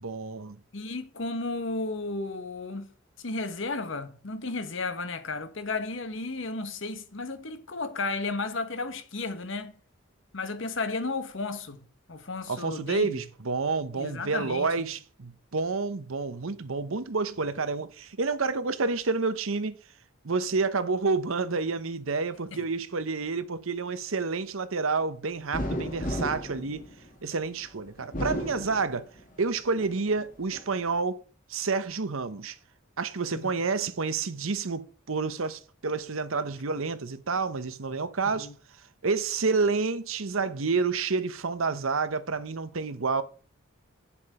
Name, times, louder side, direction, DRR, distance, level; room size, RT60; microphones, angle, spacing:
voice 1, 0.0-0.6 12.5-19.8 20.2-26.9 27.2-29.1 29.4-31.2 31.5-32.6 33.0-38.5 39.0-43.2, right 4 dB, 75° right, 0.9 m, -29 dB
voice 2, 0.7-2.9 3.2-9.7 10.3-13.2 13.9-14.7 22.5-22.6 33.3-33.5 38.2-38.5, left 3 dB, 65° left, 1.1 m, -33 dB
sound 1, 25.5-27.4 28.0-29.3 29.8-30.7, equal, 40° left, 2.0 m, -34 dB
8.9 x 7.2 x 4.9 m
head